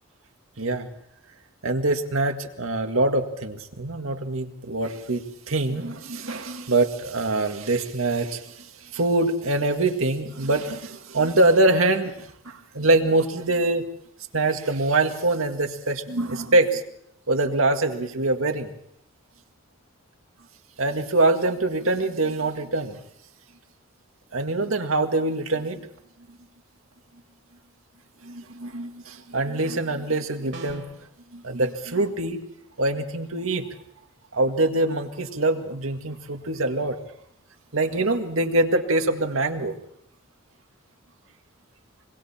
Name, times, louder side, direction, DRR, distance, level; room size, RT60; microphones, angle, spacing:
voice 1, 0.6-0.9 1.6-13.8 14.3-16.8 17.3-18.7 20.8-23.0 24.3-25.8 28.2-30.8 31.3-32.4 32.8-33.7 34.3-37.0 37.7-39.7, right 2 dB, 80° right, 5 dB, 1.9 m, -24 dB
sound 1, 30.5-31.1, right 2 dB, 60° right, 3.0 m, -40 dB
26.0 x 23.0 x 4.4 m, 0.72 s
head